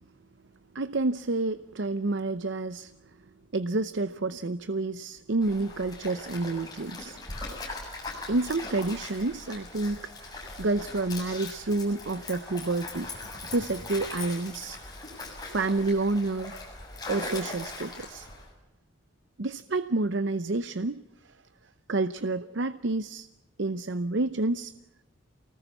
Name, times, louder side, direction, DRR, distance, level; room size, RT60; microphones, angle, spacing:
voice 1, 0.7-2.9 3.5-7.2 8.3-13.1 13.5-14.8 15.5-16.5 17.1-18.3 19.4-21.4 21.9-23.3 23.6-24.7, right 2 dB, 70° right, 0.8 m, -29 dB
Stream, 5.4-18.5, left 2 dB, 20° left, 7.3 m, -40 dB
28.5 x 19.5 x 7.2 m
head